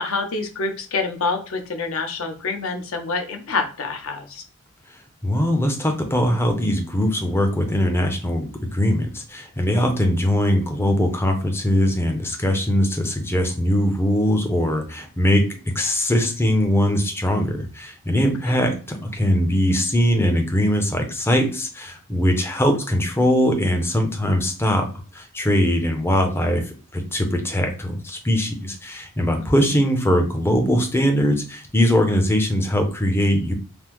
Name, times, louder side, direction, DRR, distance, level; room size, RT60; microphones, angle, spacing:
voice 1, 0.0-4.4 18.5-18.6 29.4-29.7, left 4 dB, 70° left, 6 dB, 0.6 m, -27 dB
voice 2, 5.2-15.4 15.7-24.9 25.1-33.5, equal, 10° left, 4 dB, 0.5 m, -21 dB
3.3 x 2.0 x 2.9 m, 0.37 s
head